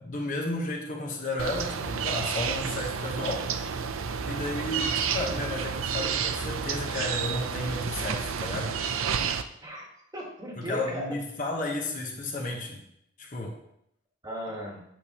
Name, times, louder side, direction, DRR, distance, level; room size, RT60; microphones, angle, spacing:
voice 1, 0.1-3.5 4.2-8.7 10.6-12.8 13.2-13.6, left 2 dB, 35° left, 0 dB, 1.1 m, -33 dB
sound 1, 1.4-9.4, right 6 dB, 70° right, 0.5 m, -30 dB
voice 2, 9.6-11.1 14.2-14.8, equal, 20° right, -2 dB, 1.5 m, -37 dB
9.1 x 6.8 x 2.9 m, 0.75 s
head